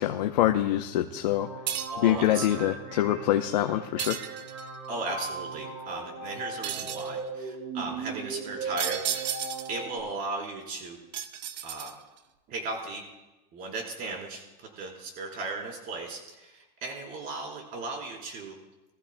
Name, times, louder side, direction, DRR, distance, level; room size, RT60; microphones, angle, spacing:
voice 1, 0.0-1.5 2.0-4.2, left 12 dB, 85° left, 5 dB, 0.8 m, -25 dB
sound 1, 1.3-10.0, right 4 dB, 70° right, 3.2 m, -38 dB
sound 2, 1.7-2.1 4.0-4.8 6.6-7.2 8.8-9.8 11.1-12.2, right 9 dB, 85° right, 0.9 m, -33 dB
voice 2, 1.9-2.6 4.9-9.3 9.7-11.0 11.6-11.9 12.5-13.0 13.5-18.6, right 3 dB, 40° right, -1 dB, 4.1 m, -36 dB
21.0 x 14.5 x 2.2 m, 1.0 s
supercardioid pair, 125°, 21 cm